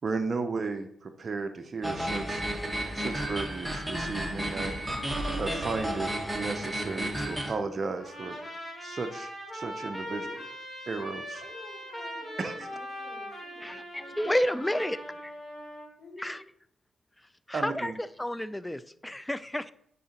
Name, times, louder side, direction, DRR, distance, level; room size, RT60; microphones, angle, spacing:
voice 1, 0.0-2.4 2.9-5.1 5.4-6.1 6.3-8.4 8.8-10.3 10.9-11.4 12.4-12.7 17.5-17.9, right 4 dB, 50° right, 6 dB, 0.5 m, -34 dB
sound 1, 1.8-7.5, right 1 dB, 10° right, 1.2 m, -32 dB
Trumpet, 8.0-15.9, equal, 30° left, 2.0 m, -41 dB
voice 2, 10.0-10.5 11.4-14.7 15.0-15.1 16.0-16.3, left 2 dB, 45° left, -2 dB, 2.6 m, -49 dB
voice 3, 13.6-15.3 16.2-16.4 17.5-17.9 18.2-19.7, left 1 dB, 10° left, 15 dB, 0.4 m, -31 dB
9.2 x 3.7 x 2.8 m, 0.69 s
supercardioid pair, 60°, 0 cm